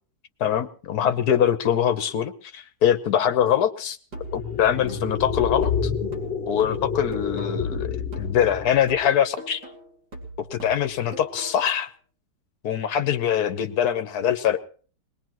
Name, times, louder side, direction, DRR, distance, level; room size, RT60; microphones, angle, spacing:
voice 1, 0.4-4.0 4.3-5.9 6.5-9.6 10.4-11.9 12.6-14.6, left 9 dB, 65° left, 11 dB, 1.5 m, -23 dB
sound 1, 4.1-7.8 8.1-11.8, right 1 dB, 80° right, 3.2 m, -41 dB
sound 2, 4.2-9.1, left 6 dB, 50° left, 1.8 m, -29 dB
21.5 x 20.0 x 3.0 m, 0.41 s
omnidirectional pair, 1.8 m